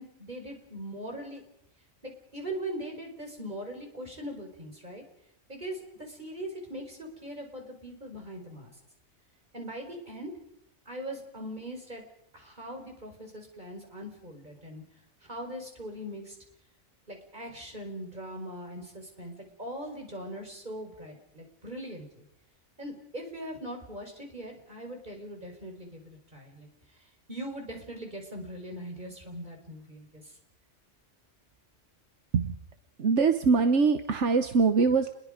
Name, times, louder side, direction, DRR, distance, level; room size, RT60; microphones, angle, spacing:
voice 1, 0.0-1.4 2.0-5.0 5.5-8.7 9.5-10.3 10.9-12.0 12.3-14.8 15.2-16.4 17.1-22.2 22.8-26.7 26.9-27.0 27.3-30.4, right 1 dB, 40° right, 2 dB, 5.2 m, -41 dB
voice 2, 33.0-35.1, right 4 dB, 75° right, 8 dB, 1.4 m, -23 dB
29.5 x 21.5 x 5.2 m, 0.78 s
omnidirectional pair, 1.2 m